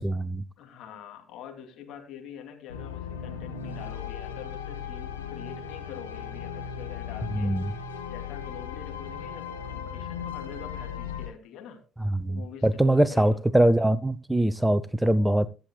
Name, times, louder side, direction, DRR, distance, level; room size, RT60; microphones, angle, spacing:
voice 1, 0.0-0.4 7.3-7.7 12.0-15.5, right 1 dB, 5° right, 0.7 m, -23 dB
voice 2, 0.6-7.7 8.1-11.8 12.3-13.4, left 8 dB, 55° left, 2.7 m, -45 dB
sound 1, 2.7-11.3, left 7 dB, 85° left, 1.7 m, -37 dB
22.5 x 7.9 x 2.2 m
figure-of-eight pair, 55°, 0 cm